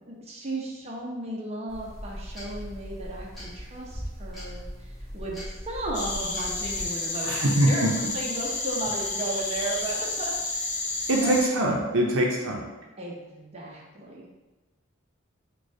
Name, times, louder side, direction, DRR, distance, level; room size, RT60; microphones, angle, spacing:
voice 1, 0.0-10.7 11.1-11.3 13.0-14.4, right 1 dB, 30° right, -3 dB, 0.6 m, -35 dB
sound 1, 1.7-6.9, equal, ahead, 1.3 m, -39 dB
sound 2, 5.9-11.5, left 3 dB, 40° left, 0.6 m, -31 dB
voice 2, 7.2-7.9 11.1-12.6, right 1 dB, 80° right, -1 dB, 0.7 m, -23 dB
6.4 x 2.3 x 2.7 m, 1.1 s
head